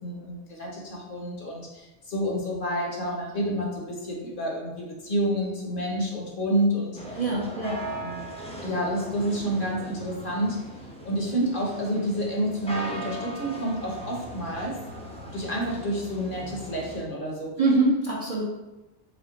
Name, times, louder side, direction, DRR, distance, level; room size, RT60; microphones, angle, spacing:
voice 1, 0.0-7.2 8.0-8.3 8.6-10.6 11.0-14.7 15.3-17.5, equal, 50° left, -2 dB, 1.0 m, -29 dB
sound 1, 6.9-17.0, right 1 dB, 10° left, 0.5 m, -39 dB
voice 2, 7.2-7.8 17.6-18.4, right 2 dB, 40° right, -5 dB, 0.6 m, -24 dB
3.5 x 3.2 x 3.8 m, 1.0 s
omnidirectional pair, 1.2 m